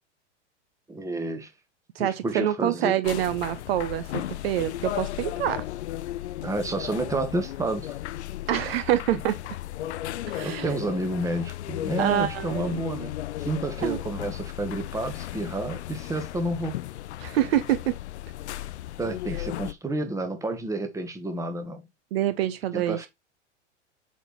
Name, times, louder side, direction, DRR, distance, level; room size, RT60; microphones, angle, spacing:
voice 1, 0.9-1.5 2.0-2.9 6.4-7.9 10.4-13.1 13.4-16.8 19.0-21.8 22.7-23.1, right 2 dB, 10° right, 1.1 m, -30 dB
voice 2, 1.9-5.6 8.5-9.4 10.3-10.7 12.0-12.8 13.8-14.0 17.2-18.0 22.1-23.0, right 12 dB, 55° right, 0.7 m, -26 dB
sound 1, 3.0-19.7, left 14 dB, 70° left, 0.5 m, -35 dB
7.8 x 4.1 x 3.0 m
figure-of-eight pair, 95°, 35 cm